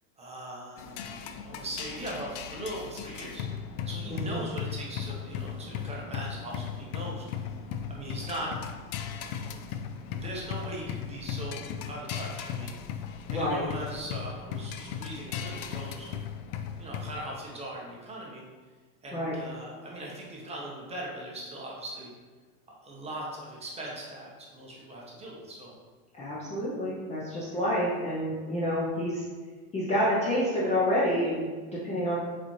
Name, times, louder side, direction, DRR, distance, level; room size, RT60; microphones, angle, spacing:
voice 1, 0.2-3.4 3.8-7.5 7.9-8.5 10.1-12.8 13.3-16.1 16.8-18.4 19.0-22.1 22.7-25.7, right 1 dB, 15° right, -4 dB, 0.9 m, -40 dB
sound 1, 0.8-17.3, left 7 dB, 70° left, 0.6 m, -37 dB
voice 2, 13.3-13.6 19.1-19.3 26.1-29.2 29.7-32.2, equal, 15° left, -7 dB, 0.6 m, -28 dB
4.2 x 4.0 x 3.1 m, 1.4 s
supercardioid pair, 130°, 45 cm